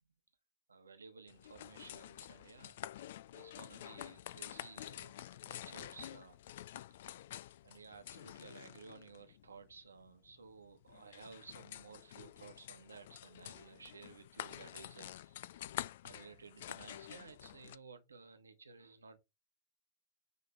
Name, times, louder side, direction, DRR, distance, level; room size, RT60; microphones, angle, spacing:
voice 1, 0.7-3.1 3.3-6.4 7.6-15.6 16.0-19.2, right 5 dB, 75° right, 1.1 m, -56 dB
sound 1, 1.3-17.8, left 12 dB, 55° left, 0.3 m, -49 dB
9.5 x 3.2 x 4.5 m
figure-of-eight pair, 90°, 0 cm